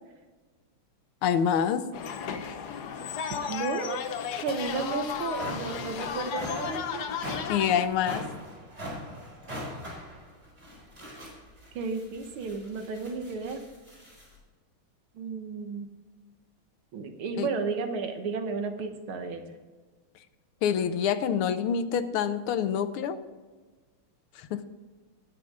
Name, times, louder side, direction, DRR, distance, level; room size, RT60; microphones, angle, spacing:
voice 1, 1.2-1.9 7.5-8.3 17.4-17.5 20.6-23.2 24.4-24.6, left 8 dB, 85° left, 11 dB, 1.7 m, -26 dB
sound 1, 1.9-7.8, left 7 dB, 60° left, 1.2 m, -34 dB
voice 2, 3.5-4.0 4.4-7.1 11.8-13.6 15.2-15.9 16.9-19.4, right 4 dB, 80° right, 6 dB, 2.0 m, -33 dB
sound 2, 5.3-14.4, equal, 30° right, 4.6 m, -42 dB
19.5 x 6.5 x 3.7 m, 1.3 s
omnidirectional pair, 2.3 m